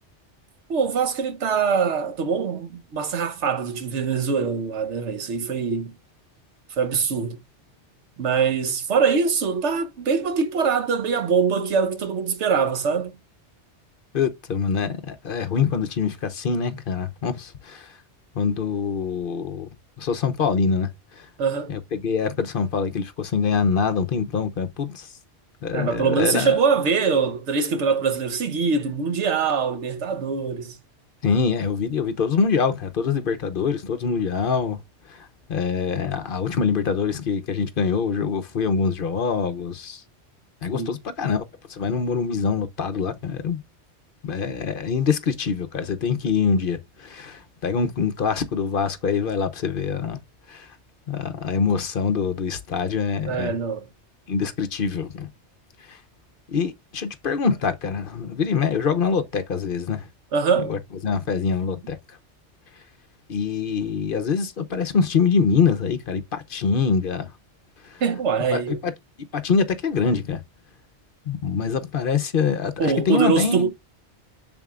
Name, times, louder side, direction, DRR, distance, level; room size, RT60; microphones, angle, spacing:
voice 1, 0.7-5.9 6.7-7.4 8.2-13.1 21.4-21.7 25.7-30.8 40.7-41.0 53.3-53.9 60.3-60.7 68.0-68.8 72.8-73.7, right 5 dB, 80° right, 1.2 m, -23 dB
voice 2, 14.1-17.9 18.3-19.7 20.0-21.3 21.7-25.1 25.6-26.6 31.2-34.8 35.1-40.0 40.6-41.4 41.7-43.6 44.2-50.2 50.5-50.7 51.1-53.5 54.3-55.3 55.9-56.0 56.5-60.1 60.7-62.0 63.3-67.3 67.8-68.0 68.5-68.9 69.3-70.4 71.3-73.7, left 5 dB, 55° left, 0.8 m, -24 dB
7.1 x 6.1 x 2.4 m
omnidirectional pair, 1.2 m